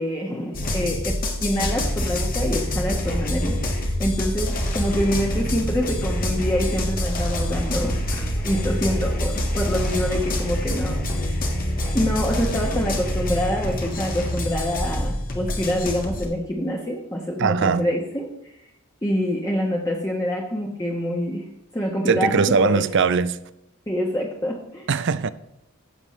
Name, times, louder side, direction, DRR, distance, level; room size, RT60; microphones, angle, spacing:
voice 1, 0.0-11.7 11.9-18.5 19.0-21.5 21.7-22.8 23.9-24.9, equal, 15° left, 1.1 m, -26 dB
sound 1, 0.5-16.2, left 1 dB, 40° left, 1.6 m, -26 dB
voice 2, 17.4-17.9 22.1-23.4 24.9-25.3, right 5 dB, 55° right, 0.5 m, -20 dB
15.0 x 7.2 x 3.2 m
head